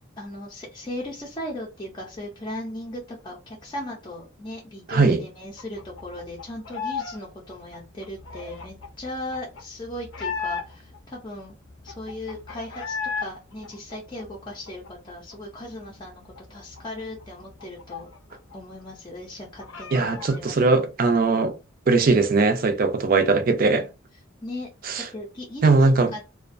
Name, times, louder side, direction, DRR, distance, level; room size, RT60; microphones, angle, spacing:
voice 1, 0.2-11.5 11.8-18.1 18.5-20.8 23.7-23.8 24.4-24.7 25.0-26.3, left 1 dB, 25° left, 0.5 m, -37 dB
voice 2, 4.9-5.2 19.9-21.6 21.9-23.9 24.8-25.1 25.6-26.1, right 3 dB, 50° right, 0.4 m, -20 dB
sound 1, 5.6-7.2 7.4-11.0 11.4-11.5 11.7-13.3 13.6-15.3 15.7-15.8 16.1-18.5 18.8-18.9 19.2-20.4, left 5 dB, 80° left, 0.6 m, -35 dB
2.4 x 2.1 x 2.5 m
head